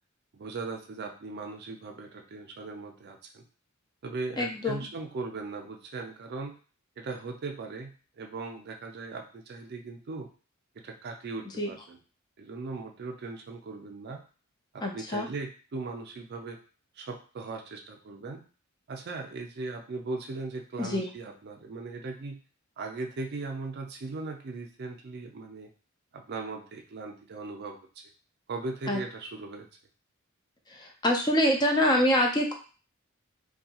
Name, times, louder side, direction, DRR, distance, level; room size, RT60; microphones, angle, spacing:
voice 1, 0.3-3.4 4.0-6.5 7.0-10.3 10.8-12.0 12.4-14.2 14.7-16.6 17.0-18.4 18.9-22.4 22.8-25.7 26.1-27.8 28.5-29.7, right 3 dB, 50° right, 3 dB, 0.4 m, -38 dB
voice 2, 4.4-4.8 11.6-11.7 14.8-15.3 20.8-21.1 28.9-29.0 30.7-32.5, equal, 20° left, 2 dB, 0.4 m, -25 dB
2.6 x 2.3 x 2.8 m, 0.37 s
head